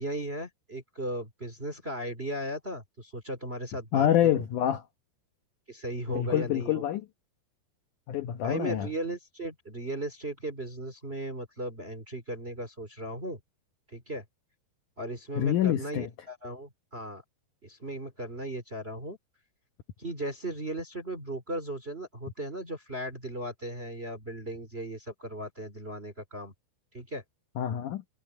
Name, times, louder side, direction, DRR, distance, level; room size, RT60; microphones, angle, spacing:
voice 1, 0.0-4.4 5.7-6.8 8.4-13.4 13.9-14.2 15.0-17.2 17.6-19.2 20.0-26.5 26.9-27.2, right 1 dB, 20° right, 1.9 m, -37 dB
voice 2, 3.9-4.8 6.1-7.1 8.1-8.9 15.4-16.1 27.6-28.0, left 11 dB, 80° left, 1.8 m, -26 dB
omnidirectional pair, 5.1 m